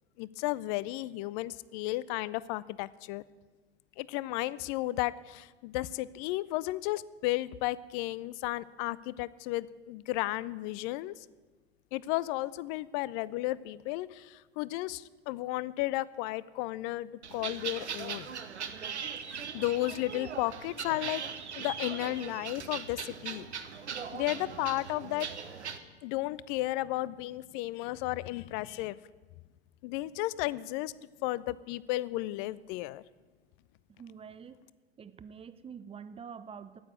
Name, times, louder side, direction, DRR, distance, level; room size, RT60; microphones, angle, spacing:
voice 1, 0.2-3.2 4.0-11.1 11.9-18.3 19.2-21.2 21.5-23.5 24.1-25.3 26.0-29.0 29.8-30.9 31.2-33.0, left 17 dB, 45° left, 19 dB, 0.5 m, -33 dB
sound 1, 17.2-25.8, right 7 dB, 85° right, 0.9 m, -39 dB
voice 2, 34.0-34.6 35.0-36.8, right 7 dB, 15° right, 13 dB, 0.6 m, -46 dB
9.3 x 8.6 x 9.3 m, 1.3 s
figure-of-eight pair, 80°, 34 cm